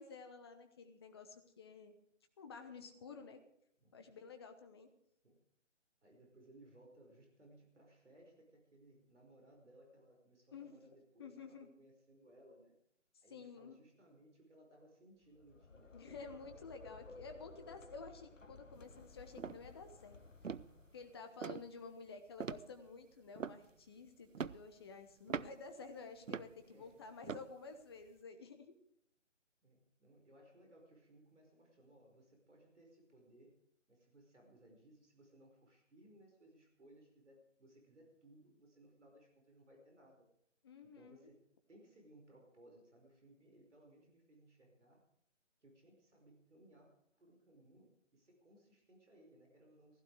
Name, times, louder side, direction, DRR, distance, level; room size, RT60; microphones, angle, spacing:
voice 1, 0.0-2.0 2.4-3.4 3.9-4.9 10.5-10.8 11.2-11.7 13.3-13.8 15.9-20.2 20.9-28.7 40.6-41.3, left 4 dB, 20° left, 7 dB, 1.0 m, -52 dB
voice 2, 6.0-12.7 13.2-16.2 21.3-21.4 26.6-27.1 29.6-33.6 33.9-40.3 40.9-41.4 41.7-45.0 45.6-50.0, right 1 dB, 70° right, 1 dB, 5.1 m, -63 dB
sound 1, 15.2-21.3, left 4 dB, 85° left, 1.1 m, -57 dB
sound 2, 18.7-19.0 19.4-19.7 20.1-20.2 20.4-21.0 21.4-21.7 22.4-22.9 23.4-23.9 24.3-24.7 25.3-25.7 26.3-26.6 27.2-27.5 28.1-28.2, right 6 dB, 85° right, 0.6 m, -43 dB
15.5 x 14.5 x 4.8 m, 0.73 s
figure-of-eight pair, 150°, 37 cm